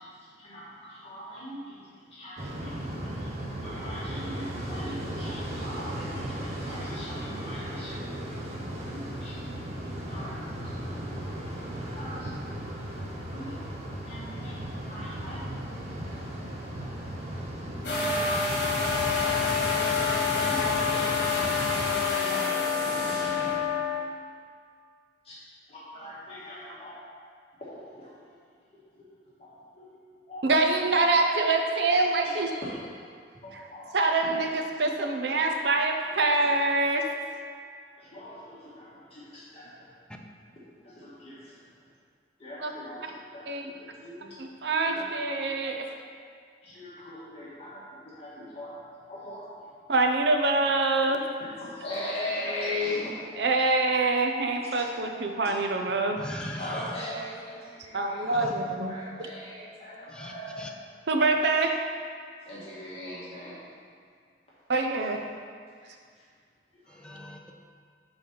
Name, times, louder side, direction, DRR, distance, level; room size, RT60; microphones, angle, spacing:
voice 1, 0.0-3.3 3.6-8.1 8.9-9.5 10.1-10.7 11.3-11.4 11.9-12.3 13.3-13.5 14.0-15.5 18.6-18.9 20.4-21.0 22.7-22.9 25.2-25.3 25.7-26.9 27.6-28.1 28.7-28.8 29.4-29.5 29.7-29.9 30.3-30.4 31.9-32.7 33.4-33.9 34.3-34.9 36.5-36.6 38.0-39.9 40.8-41.6 42.4-44.3 44.8-45.0 45.3-45.7 46.6-48.8 49.1-49.5 51.4-53.4 54.4-54.9 55.4-55.5 56.6-58.4 58.8-60.7 62.4-63.6 66.2-66.3 66.7-67.1, left 1 dB, 35° left, -9 dB, 1.7 m, -40 dB
sound 1, 2.4-21.9, right 1 dB, 40° right, 0.9 m, -36 dB
sound 2, 17.8-23.6, left 1 dB, 65° left, 1.6 m, -30 dB
sound 3, 17.8-24.1, left 8 dB, 50° left, 0.7 m, -29 dB
voice 2, 30.4-32.5 33.9-37.0 42.6-42.7 43.5-43.6 44.4-45.8 49.9-51.2 53.4-56.2 57.9-58.9 61.1-61.8 64.7-65.2, right 3 dB, 70° right, 3 dB, 0.7 m, -25 dB
voice 3, 56.2-56.9 58.2-58.8 60.1-60.7 66.9-67.5, left 1 dB, 5° left, 1 dB, 0.5 m, -40 dB
6.8 x 4.0 x 5.3 m, 2.1 s
head